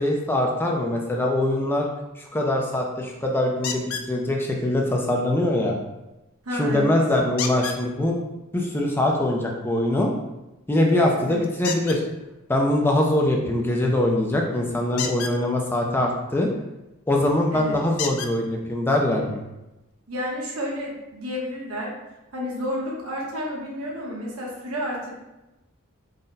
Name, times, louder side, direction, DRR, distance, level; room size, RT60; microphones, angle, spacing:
voice 1, 0.0-1.9 2.2-5.8 6.5-8.2 8.5-10.1 10.7-12.0 12.5-16.5 17.1-19.4, left 1 dB, 10° left, 0 dB, 0.4 m, -23 dB
sound 1, 3.6-4.1 7.4-7.8 11.6-12.0 14.9-15.4 17.0-17.1 18.0-18.3 19.3-19.4 19.9-20.0, left 7 dB, 80° left, 0.4 m, -30 dB
voice 2, 6.4-7.0 11.2-11.4 17.5-17.8 20.1-21.9 22.3-25.1, equal, 85° right, -3 dB, 1.0 m, -30 dB
3.9 x 2.1 x 3.8 m, 0.99 s
head